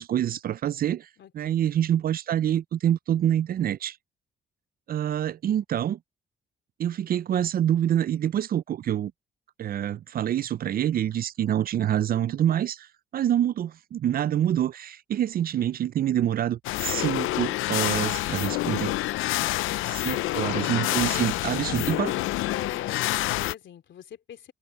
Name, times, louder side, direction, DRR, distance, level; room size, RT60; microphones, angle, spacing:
voice 1, 0.0-1.1 1.3-4.0 4.9-6.0 6.8-9.1 9.6-12.9 13.1-19.0 19.9-22.1, right 10 dB, 50° right, 0.4 m, -26 dB
voice 2, 1.2-1.7 21.1-21.4 21.7-22.2 22.5-24.5, left 10 dB, 65° left, 3.3 m, -44 dB
sound 1, 16.6-23.5, left 17 dB, 90° left, 0.5 m, -27 dB
cardioid pair, 90°, 20 cm